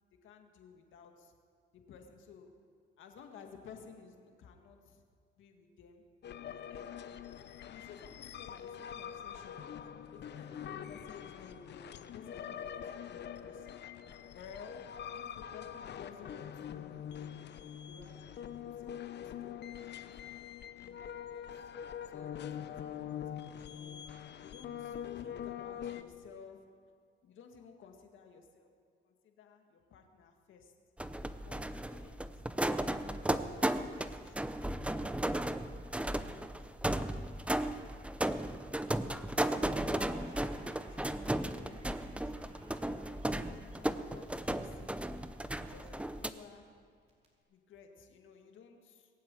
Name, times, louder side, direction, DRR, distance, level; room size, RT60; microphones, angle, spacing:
voice 1, 0.2-1.3 1.7-2.6 3.0-5.0 5.4-6.0 6.7-7.0 7.7-9.7 10.1-13.9 14.3-17.4 17.9-19.7 20.8-21.5 22.1-24.0 24.4-26.7 27.2-28.7 29.0-30.7 31.5-35.5 35.9-37.0 39.1-42.3 42.8-45.1 45.6-46.6 47.5-49.1, left 6 dB, 75° left, 5 dB, 1.9 m, -55 dB
sound 1, 6.2-26.0, left 9 dB, 60° left, 0.8 m, -44 dB
sound 2, 31.0-46.3, right 1 dB, 5° right, 0.7 m, -35 dB
Crackle, 39.3-45.2 45.5-47.3, right 1 dB, 35° right, 4.2 m, -61 dB
21.0 x 7.7 x 8.9 m, 2.1 s
cardioid pair, 90°, 20 cm